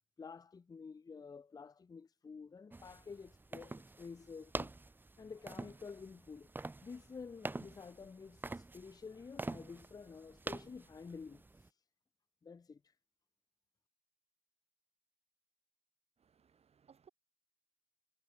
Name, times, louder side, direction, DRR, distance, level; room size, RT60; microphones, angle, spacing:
voice 1, 0.2-4.7 5.2-6.5 6.8-11.4 12.4-12.8, left 5 dB, 20° left, 0.8 m, -50 dB
sound 1, 2.7-11.7, right 2 dB, 10° right, 0.8 m, -46 dB
voice 2, 16.2-17.1, right 7 dB, 40° right, 4.7 m, -65 dB
cardioid pair, 110°, 17 cm